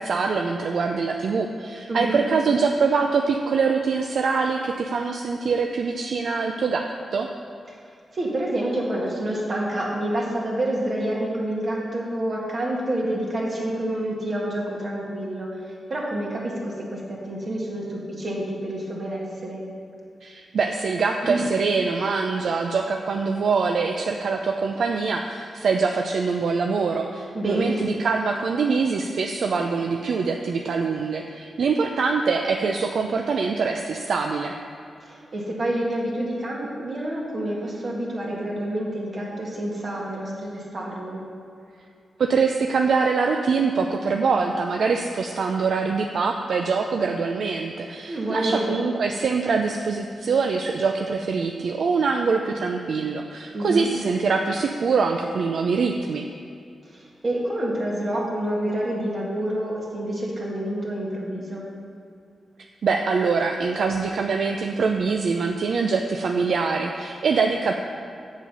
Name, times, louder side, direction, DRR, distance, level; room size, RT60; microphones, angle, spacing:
voice 1, 0.0-7.3 20.2-34.5 42.2-56.3 62.8-67.7, right 4 dB, 70° right, 3 dB, 0.4 m, -24 dB
voice 2, 1.9-2.2 7.7-7.8 8.1-15.5 15.9-19.6 21.2-21.4 27.3-27.8 35.0-41.2 48.1-48.8 53.5-53.9 56.9-61.6, right 1 dB, 45° right, -3 dB, 1.9 m, -28 dB
7.6 x 7.3 x 5.4 m, 2.5 s
wide cardioid pair, 100°, 0 cm